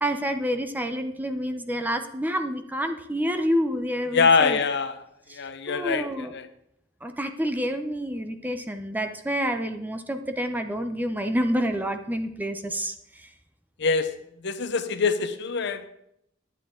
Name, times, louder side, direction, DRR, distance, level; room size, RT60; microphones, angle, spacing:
voice 1, 0.0-4.6 5.3-5.4 5.7-6.3 7.0-13.3, equal, 10° right, 7 dB, 0.6 m, -28 dB
voice 2, 4.1-5.0 5.3-6.5 13.8-14.1 14.4-15.8, left 4 dB, 60° left, 10 dB, 0.8 m, -24 dB
11.0 x 8.8 x 3.8 m, 0.76 s
head